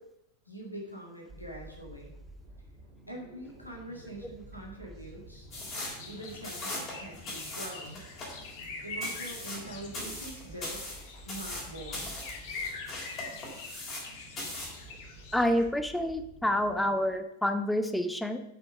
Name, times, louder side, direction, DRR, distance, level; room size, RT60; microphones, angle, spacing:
voice 1, 0.5-2.1 3.1-5.5 6.1-8.0 8.8-10.9 11.3-12.2, right 1 dB, 90° left, -1 dB, 1.9 m, -44 dB
sound 1, 1.3-17.2, right 1 dB, 30° right, 3.1 m, -51 dB
sound 2, 5.5-15.6, left 3 dB, 50° left, 1.4 m, -44 dB
sound 3, 5.5-14.1 14.4-14.8, left 1 dB, 30° left, 3.5 m, -40 dB
voice 2, 15.3-18.4, left 1 dB, 5° left, 8 dB, 0.7 m, -28 dB
7.1 x 5.6 x 6.4 m, 0.81 s
figure-of-eight pair, 90°, 0 cm